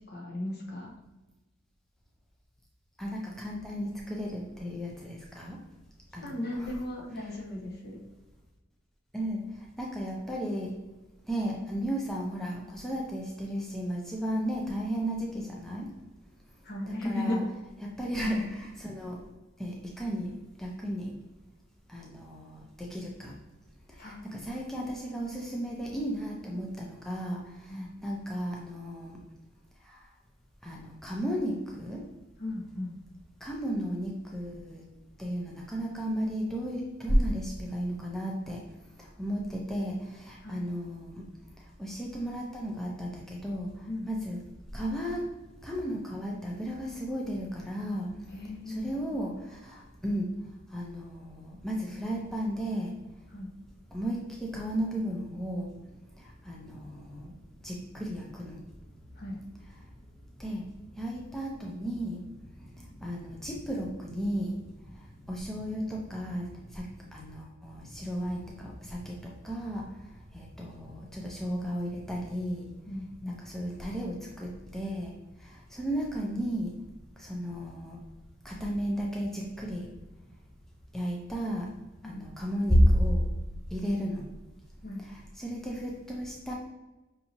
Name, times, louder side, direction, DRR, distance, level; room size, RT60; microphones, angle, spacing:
voice 1, 0.1-0.9 6.2-8.0 16.6-17.4 24.0-24.2 26.5-26.6 27.7-27.9 32.4-33.0 40.4-40.7 43.9-44.1 48.3-49.2 53.3-53.5 59.2-59.4 72.8-73.4 82.0-82.2 84.8-85.0, left 1 dB, 50° left, -1 dB, 0.9 m, -36 dB
voice 2, 3.0-5.6 6.1-6.7 7.2-7.3 9.1-10.8 11.3-15.9 16.9-17.4 17.8-19.2 19.6-21.1 21.9-23.3 24.0-29.2 29.8-30.1 30.6-32.1 33.4-34.9 35.2-38.6 39.0-41.3 41.6-44.4 44.7-45.3 45.6-48.1 48.7-50.4 50.7-53.0 53.9-55.7 56.2-57.4 57.6-58.6 60.4-62.3 62.6-72.7 73.3-76.7 77.2-78.0 78.4-79.9 80.9-81.7 82.0-83.3 83.7-84.3 85.0-86.5, equal, ahead, -2 dB, 0.4 m, -33 dB
5.4 x 2.7 x 2.8 m, 1.1 s
head